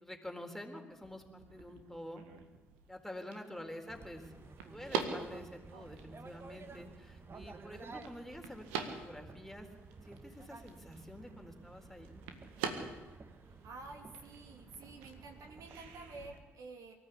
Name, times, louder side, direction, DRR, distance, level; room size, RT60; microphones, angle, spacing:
voice 1, 0.0-2.2 2.9-4.3 4.7-9.7 10.0-12.1, left 1 dB, 5° left, 3 dB, 4.0 m, -48 dB
sound 1, 0.9-16.4, right 6 dB, 75° right, 1.8 m, -46 dB
sound 2, 3.9-16.3, right 4 dB, 35° right, 1.7 m, -53 dB
voice 2, 13.5-16.9, right 3 dB, 60° right, 2 dB, 3.1 m, -50 dB
23.5 x 14.0 x 8.4 m, 1.2 s
figure-of-eight pair, 40°, 7 cm